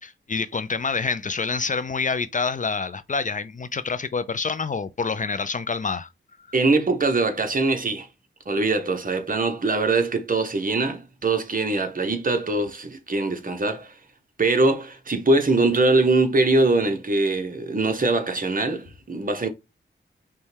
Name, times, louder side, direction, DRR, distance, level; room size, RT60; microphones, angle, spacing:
voice 1, 0.0-6.1, left 4 dB, 40° left, 0.4 m, -27 dB
voice 2, 6.5-8.1 8.5-13.9 14.4-19.5, right 3 dB, 45° right, 0.9 m, -22 dB
5.3 x 2.2 x 3.2 m
wide cardioid pair, 75°, 20 cm